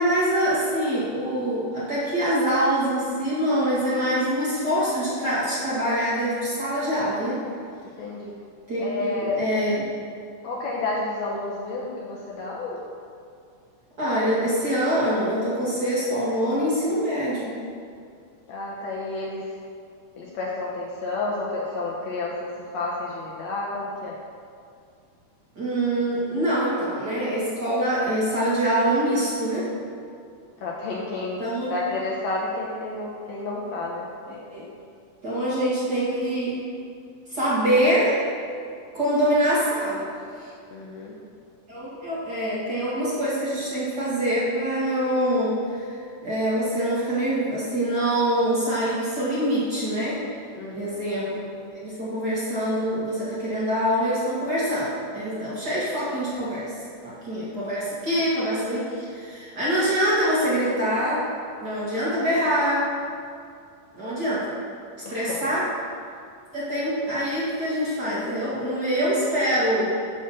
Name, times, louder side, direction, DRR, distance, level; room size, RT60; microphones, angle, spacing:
voice 1, 0.0-7.4 8.7-9.9 14.0-17.5 25.6-29.7 31.4-31.7 34.3-34.6 35.2-36.6 37.3-38.2 38.9-40.1 40.4-40.5 41.7-50.2 50.7-51.4 51.7-56.7 57.0-61.3 61.6-63.0 63.9-64.5 65.1-65.7 66.5-69.9, equal, 35° right, -9 dB, 2.3 m, -24 dB
voice 2, 8.0-8.3 8.8-9.4 10.4-12.8 18.5-19.6 20.2-24.2 30.6-34.1 40.7-41.2 50.5-51.0 65.1-65.6, left 2 dB, 70° left, -4 dB, 1.9 m, -30 dB
10.5 x 4.2 x 7.2 m, 2.3 s
omnidirectional pair, 3.7 m